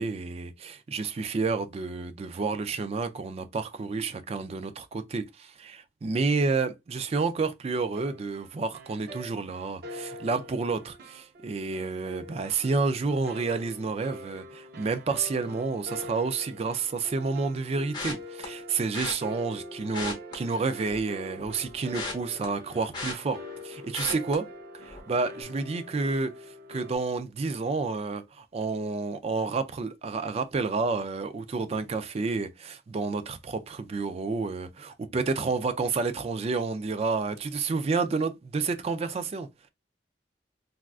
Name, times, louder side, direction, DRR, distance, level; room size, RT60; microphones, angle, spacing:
voice 1, 0.0-24.5 24.8-39.5, right 4 dB, 35° right, 0.3 m, -30 dB
sound 1, 8.0-27.0, equal, 55° right, 0.7 m, -44 dB
sound 2, 17.9-18.5 18.9-19.1 19.8-21.1 21.4-23.6 23.9-24.3 24.8-25.1 25.4-25.5, left 3 dB, 25° left, 0.9 m, -36 dB
3.4 x 2.4 x 2.3 m
head